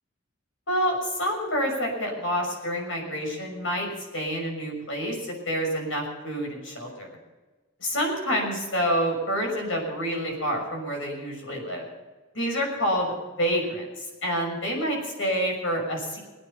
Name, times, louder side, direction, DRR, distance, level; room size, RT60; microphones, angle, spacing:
voice 1, 0.7-7.2 7.8-11.9 12.3-16.2, equal, 80° left, 1 dB, 6.2 m, -28 dB
21.5 x 9.6 x 5.7 m, 1.2 s
head